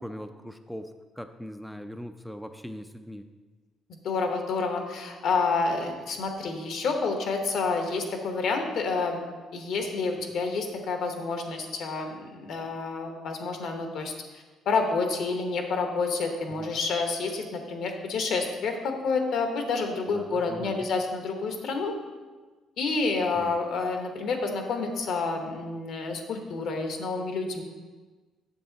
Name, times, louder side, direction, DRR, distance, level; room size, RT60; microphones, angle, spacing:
voice 1, 0.0-3.3 16.5-16.8 20.1-20.9 23.3-23.6, equal, ahead, 7 dB, 0.3 m, -41 dB
voice 2, 4.0-9.2 9.5-14.1 14.6-21.9 22.8-27.6, left 4 dB, 70° left, 4 dB, 1.1 m, -29 dB
7.7 x 6.8 x 3.9 m, 1.3 s
cardioid pair, 125°, 0 cm